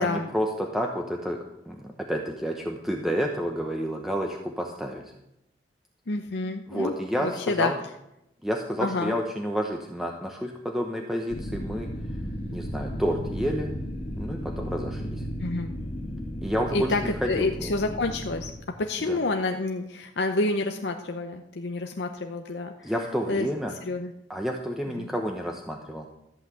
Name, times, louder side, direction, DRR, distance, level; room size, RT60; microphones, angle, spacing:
voice 1, 0.0-1.4 1.7-5.0 6.7-7.7 8.4-11.9 12.5-13.7 14.2-15.2 16.4-17.7 19.1-19.2 22.8-23.7 24.3-26.1, equal, ahead, 1 dB, 0.9 m, -30 dB
voice 2, 6.1-7.7 8.8-9.2 15.4-15.7 16.7-18.5 18.8-22.9 23.3-23.5 23.8-24.1 25.0-25.1, left 2 dB, 70° left, 4 dB, 0.8 m, -28 dB
sound 1, 11.3-18.5, equal, 35° left, 2.0 m, -34 dB
14.0 x 5.8 x 8.3 m, 0.84 s
head